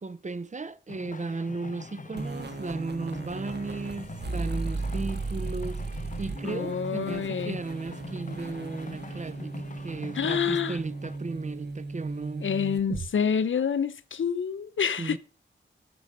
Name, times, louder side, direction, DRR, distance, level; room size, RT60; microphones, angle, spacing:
voice 1, 0.0-12.5 15.0-15.2, right 3 dB, 35° right, 0.7 m, -35 dB
sound 1, 0.9-11.2, left 3 dB, 40° left, 0.9 m, -44 dB
sound 2, 2.2-13.1, right 3 dB, 60° right, 1.5 m, -36 dB
voice 2, 6.4-7.6 10.1-10.8 12.4-15.2, left 7 dB, 75° left, 0.7 m, -27 dB
8.8 x 6.9 x 6.4 m
cardioid pair, 50°, 20 cm